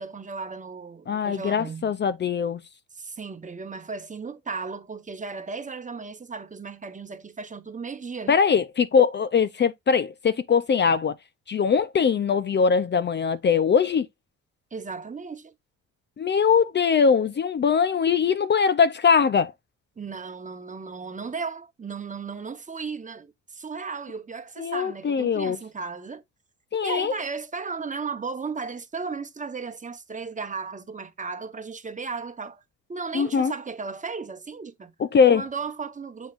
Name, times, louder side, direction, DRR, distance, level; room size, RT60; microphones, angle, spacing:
voice 1, 0.0-1.9 2.9-8.4 14.7-15.5 20.0-26.2 26.8-32.6 32.9-34.9 35.3-36.3, right 5 dB, 25° right, 0.9 m, -35 dB
voice 2, 1.1-2.6 8.3-11.1 11.5-14.1 16.2-19.5 24.6-25.6 26.7-27.1 33.1-33.5 35.0-35.4, left 6 dB, 35° left, 0.5 m, -21 dB
7.2 x 5.6 x 2.4 m
cardioid pair, 90°, 30 cm